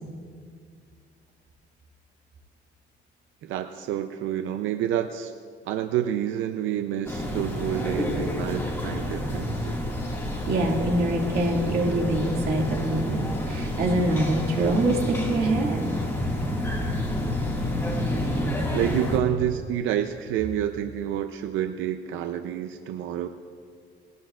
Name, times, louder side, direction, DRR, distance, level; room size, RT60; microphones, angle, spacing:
voice 1, 3.4-5.3 5.7-9.8 18.7-23.3, right 10 dB, 90° right, 7 dB, 0.6 m, -28 dB
sound 1, 7.1-19.2, left 1 dB, 10° left, 1.9 m, -29 dB
voice 2, 10.5-15.9, right 1 dB, 55° right, 0 dB, 2.2 m, -25 dB
20.5 x 17.5 x 2.4 m, 2.1 s
cardioid pair, 175°, 20 cm